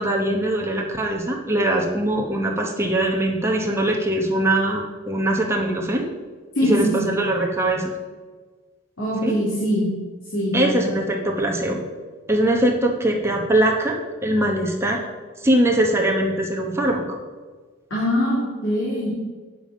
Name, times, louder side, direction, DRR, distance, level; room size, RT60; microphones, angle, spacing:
voice 1, 0.0-6.0 6.6-7.9 9.2-9.3 10.5-11.8 12.3-14.0 14.2-15.0 15.4-17.2, right 1 dB, 10° right, 0 dB, 1.0 m, -22 dB
voice 2, 6.5-7.1 9.0-9.9 10.3-11.0 17.9-19.1, equal, 65° left, -7 dB, 2.7 m, -22 dB
9.0 x 7.1 x 5.2 m, 1.4 s
head